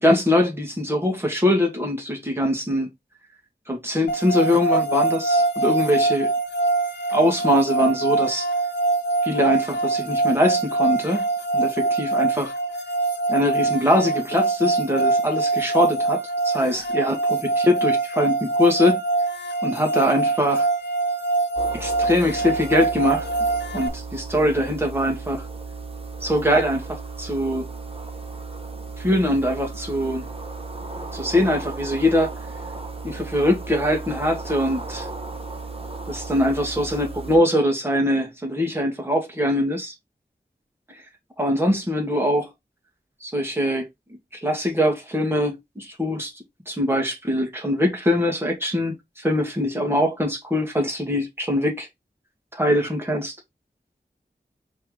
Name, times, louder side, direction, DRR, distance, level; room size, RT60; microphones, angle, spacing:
voice 1, 0.0-2.9 3.7-6.3 7.1-8.5 9.2-11.3 11.5-12.5 13.3-19.0 19.6-20.7 21.7-23.2 23.7-25.5 26.2-27.7 29.0-30.3 31.1-32.3 33.0-35.1 36.1-39.9 40.9-41.0 41.4-42.5 43.2-43.9 44.3-46.3 46.7-51.9 52.5-53.3, left 1 dB, 15° right, 1.8 m, -22 dB
sound 1, 4.1-23.9, right 3 dB, 80° left, 1.0 m, -24 dB
sound 2, 21.6-37.4, right 3 dB, 30° right, 1.0 m, -35 dB
4.5 x 3.3 x 3.6 m
wide cardioid pair, 60°, 18 cm